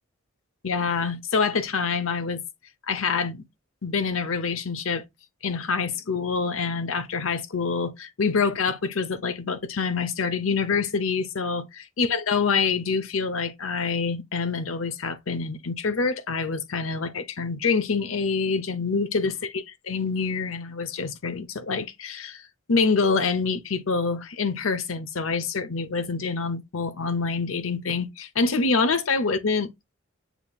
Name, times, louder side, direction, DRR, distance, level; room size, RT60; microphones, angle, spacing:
voice 1, 0.6-2.4 2.9-3.4 3.8-5.0 5.4-29.7, left 4 dB, 75° left, 0.8 m, -26 dB
7.0 x 2.9 x 2.3 m
head